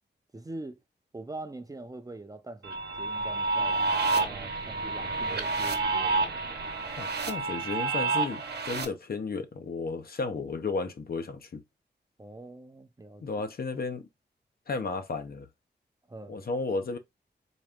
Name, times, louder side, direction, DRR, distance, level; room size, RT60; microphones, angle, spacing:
voice 1, 0.3-0.8 1.1-6.3 12.2-13.2 16.1-16.4, right 2 dB, 20° right, 0.6 m, -43 dB
sound 1, 2.6-8.8, right 3 dB, 65° right, 0.9 m, -29 dB
voice 2, 7.0-11.6 13.2-14.1 14.7-15.5 16.3-17.0, left 4 dB, 60° left, 0.8 m, -33 dB
4.1 x 2.4 x 3.5 m
wide cardioid pair, 90°, 18 cm